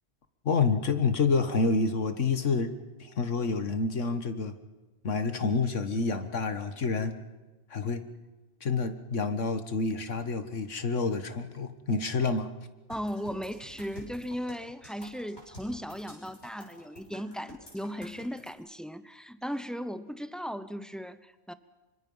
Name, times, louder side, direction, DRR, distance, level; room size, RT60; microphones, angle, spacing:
voice 1, 0.5-2.7 3.0-4.5 5.0-7.1 7.7-8.0 8.6-12.5, left 4 dB, 90° left, 9 dB, 1.9 m, -28 dB
sound 1, 12.9-18.5, equal, 65° left, 6.8 m, -49 dB
voice 2, 12.9-21.5, equal, ahead, 12 dB, 0.6 m, -37 dB
25.5 x 24.5 x 5.6 m, 1.2 s
omnidirectional pair, 1.2 m